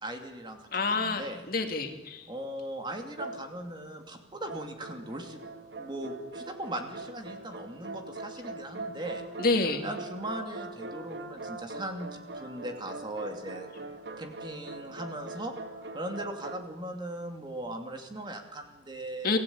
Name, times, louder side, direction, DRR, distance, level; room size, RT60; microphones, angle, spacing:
voice 1, 0.0-1.4 2.3-5.4 5.8-9.2 9.8-12.1 12.3-13.7 14.2-19.4, right 1 dB, 25° right, 4 dB, 2.5 m, -39 dB
voice 2, 0.7-2.3 9.4-9.8 19.2-19.4, left 3 dB, 55° left, 5 dB, 2.3 m, -28 dB
sound 1, 3.2-4.0 4.5-16.6, right 2 dB, 75° right, 1.7 m, -42 dB
25.0 x 16.0 x 8.6 m, 1.1 s
head